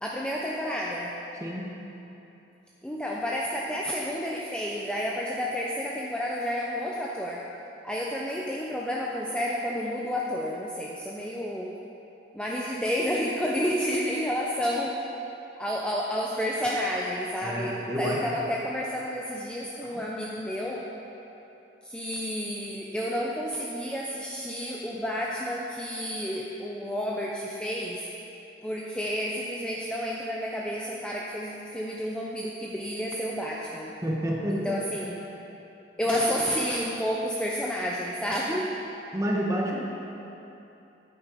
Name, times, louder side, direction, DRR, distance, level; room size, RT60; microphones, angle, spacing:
voice 1, 0.0-1.1 2.8-7.4 7.8-11.7 12.3-15.0 15.6-20.8 21.8-28.0 28.6-33.9 34.5-35.2 36.0-38.7, equal, 5° left, -4 dB, 0.5 m, -30 dB
voice 2, 1.4-1.8 17.4-18.3 19.8-20.1 34.0-34.8 36.1-36.2 39.1-39.8, equal, 15° right, -2 dB, 1.1 m, -29 dB
9.7 x 8.8 x 4.9 m, 3.0 s
head